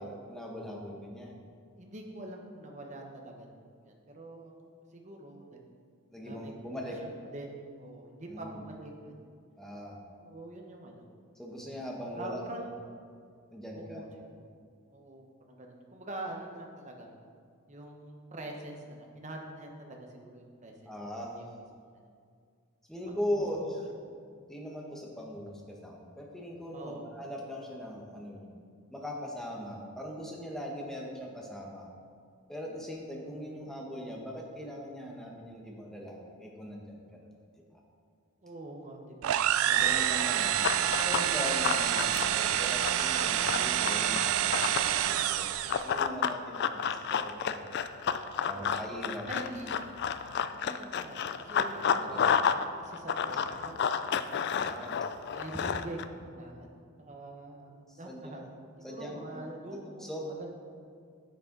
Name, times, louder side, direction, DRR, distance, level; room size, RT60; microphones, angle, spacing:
voice 1, 0.0-1.3 6.1-7.0 8.3-8.6 9.6-10.0 11.3-12.7 13.5-14.0 20.9-21.4 22.9-23.8 24.5-28.5 28.9-31.9 32.5-37.2 37.7-37.8 39.7-47.7 48.5-49.2 51.6-52.4 54.4-55.0 57.9-58.5 58.8-59.4 60.0-60.3, equal, ahead, -2 dB, 1.1 m, -40 dB
voice 2, 1.4-3.5 3.8-5.6 6.2-9.3 10.2-11.0 12.1-12.7 13.7-14.4 14.9-17.1 17.7-20.9 21.3-22.0 23.8-23.9 26.7-27.1 33.6-33.7 38.4-39.4 48.4-48.8 49.3-49.7 50.5-52.3 52.6-54.4 55.3-56.7 57.0-58.4 58.9-60.5, right 1 dB, 35° right, 1 dB, 1.0 m, -45 dB
sound 1, 39.2-45.9, right 11 dB, 70° right, 0.3 m, -28 dB
Run, 40.6-44.9 45.7-52.6 52.9-56.0, left 7 dB, 50° left, 0.3 m, -30 dB
10.5 x 6.7 x 3.9 m, 2.2 s
head